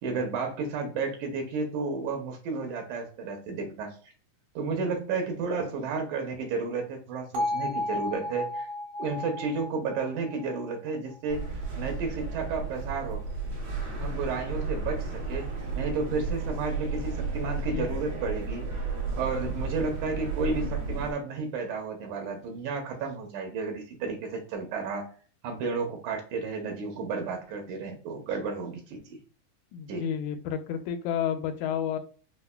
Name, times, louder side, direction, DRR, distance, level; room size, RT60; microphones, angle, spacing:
voice 1, 0.0-4.0 4.6-8.7 9.0-11.4 11.7-13.2 14.0-18.6 19.1-25.1 25.4-29.2 29.9-30.1, right 4 dB, 90° right, 3 dB, 2.1 m, -32 dB
Bell, 7.3-11.4, left 1 dB, 65° right, 2.3 m, -34 dB
sound 1, 11.3-21.1, right 4 dB, 50° right, 1.5 m, -33 dB
voice 2, 29.7-32.0, left 8 dB, 80° left, 7 dB, 1.9 m, -30 dB
5.2 x 2.1 x 2.2 m, 0.41 s
omnidirectional pair, 3.5 m